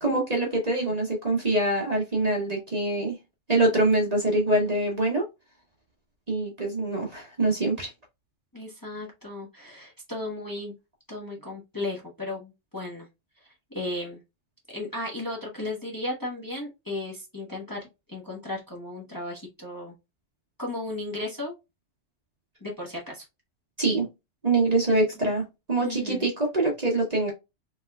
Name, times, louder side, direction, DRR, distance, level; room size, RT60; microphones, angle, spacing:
voice 1, 0.0-3.2 3.5-5.3 6.3-7.9 23.8-24.1 24.4-27.3, right 2 dB, 35° right, 1.1 m, -24 dB
voice 2, 8.5-10.7 11.1-13.1 13.7-14.2 14.7-20.0 20.6-21.5 22.6-23.2 25.8-26.3, left 2 dB, 20° left, 1.0 m, -35 dB
3.5 x 3.3 x 2.3 m
omnidirectional pair, 1.2 m